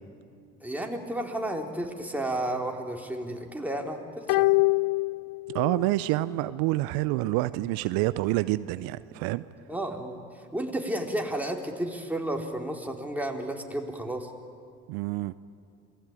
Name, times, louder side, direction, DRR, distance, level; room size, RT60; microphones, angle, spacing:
voice 1, 0.6-4.5 9.7-14.3, right 1 dB, 5° right, 1 dB, 4.1 m, -32 dB
sound 1, 4.3-5.9 6.2-6.3, left 24 dB, 65° left, 0.6 m, -25 dB
voice 2, 5.5-9.4 14.9-15.3, right 18 dB, 75° right, 15 dB, 0.7 m, -27 dB
27.5 x 20.0 x 9.0 m, 2.5 s
hypercardioid pair, 55°, 37 cm